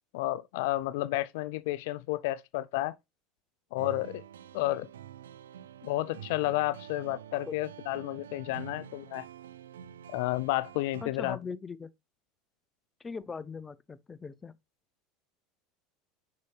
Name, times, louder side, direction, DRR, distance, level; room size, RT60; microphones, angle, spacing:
voice 1, 0.1-3.0 3.7-4.2 4.5-4.9 5.8-9.2 10.1-11.4, left 16 dB, 75° left, 0.3 m, -31 dB
sound 1, 3.8-11.1, right 9 dB, 90° right, 0.3 m, -47 dB
voice 2, 11.0-11.9 13.0-14.6, left 5 dB, 20° left, 0.6 m, -40 dB
6.6 x 5.6 x 3.3 m
hypercardioid pair, 90°, 0 cm